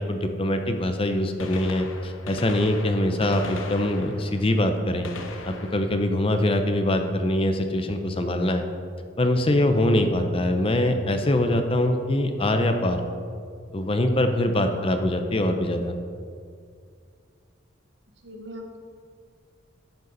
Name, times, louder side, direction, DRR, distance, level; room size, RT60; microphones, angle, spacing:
voice 1, 0.0-5.1 5.5-8.6 9.2-13.0 13.7-15.9, left 1 dB, 30° left, 6 dB, 0.6 m, -23 dB
Gunshot gunfire, 1.4-7.1 9.1-9.2 10.2-10.3 11.9-12.0 13.4-13.5 13.7-13.8, left 3 dB, 90° left, 1.0 m, -41 dB
voice 2, 18.2-18.8, equal, 65° right, 3 dB, 1.3 m, -40 dB
12.0 x 8.0 x 4.0 m, 2.2 s
head